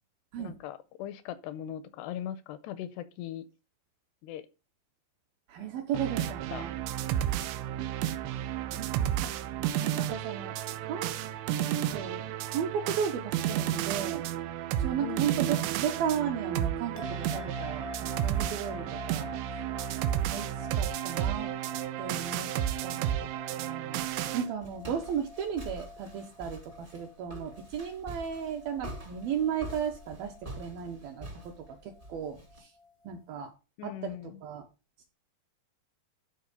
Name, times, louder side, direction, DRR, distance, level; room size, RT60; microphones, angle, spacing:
voice 1, 0.4-3.5 4.2-4.5 6.2-6.7 15.0-15.6 33.8-34.4, left 11 dB, 80° left, 2.5 m, -40 dB
voice 2, 5.5-6.8 8.7-9.3 9.6-11.1 11.9-14.3 14.8-19.3 20.3-21.5 22.0-22.5 22.8-23.3 23.6-24.0 24.3-32.7 33.1-33.5 33.8-34.6, right 8 dB, 70° right, 2.4 m, -35 dB
sound 1, 5.9-24.5, right 11 dB, 90° right, 3.0 m, -32 dB
sound 2, 16.9-33.5, left 4 dB, 30° left, 0.7 m, -47 dB
Walk footsteps, 24.0-32.6, right 1 dB, 45° right, 0.6 m, -46 dB
12.5 x 4.4 x 5.2 m
omnidirectional pair, 5.2 m